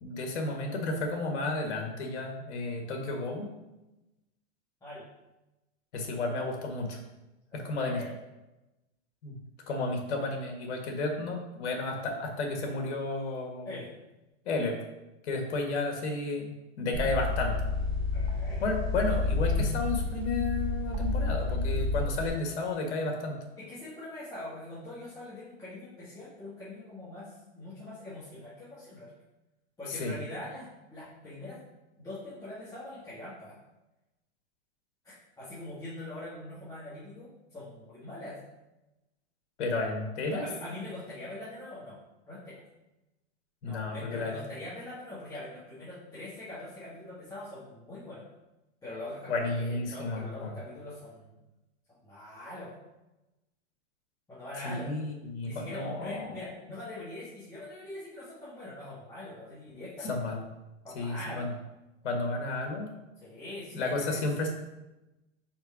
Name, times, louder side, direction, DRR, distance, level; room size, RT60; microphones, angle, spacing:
voice 1, 0.0-3.5 5.9-7.0 7.5-8.0 9.2-9.4 9.7-13.7 14.5-14.8 15.2-17.6 18.6-23.4 29.9-30.1 39.6-40.4 43.6-44.3 49.3-50.5 54.6-56.4 60.0-60.4 61.0-61.5 62.0-62.9 63.7-64.5, left 3 dB, 80° left, 2 dB, 1.6 m, -32 dB
voice 2, 7.5-8.2 13.7-13.9 18.1-18.6 23.6-29.1 29.8-31.6 32.0-33.6 35.0-38.4 40.2-42.0 42.3-42.6 43.6-48.2 48.8-51.3 52.0-52.7 54.3-54.9 55.4-60.2 60.8-61.5 63.2-64.2, left 1 dB, 10° left, -11 dB, 1.7 m, -43 dB
sound 1, 16.9-22.3, left 3 dB, 30° right, 1.1 m, -30 dB
4.8 x 4.6 x 4.8 m, 0.99 s
supercardioid pair, 140°, 33 cm